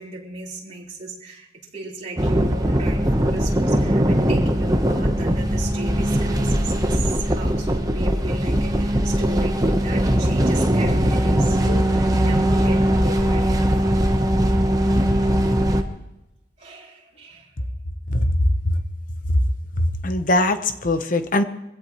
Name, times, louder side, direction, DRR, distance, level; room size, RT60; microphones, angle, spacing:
voice 1, 0.0-1.5 1.7-13.7 16.6-17.5, right 2 dB, 35° right, -7 dB, 4.0 m, -36 dB
sound 1, 2.2-15.8, equal, 20° right, 1.0 m, -20 dB
voice 2, 19.8-21.4, left 1 dB, 45° left, 9 dB, 1.0 m, -21 dB
23.5 x 16.5 x 3.1 m, 0.93 s
head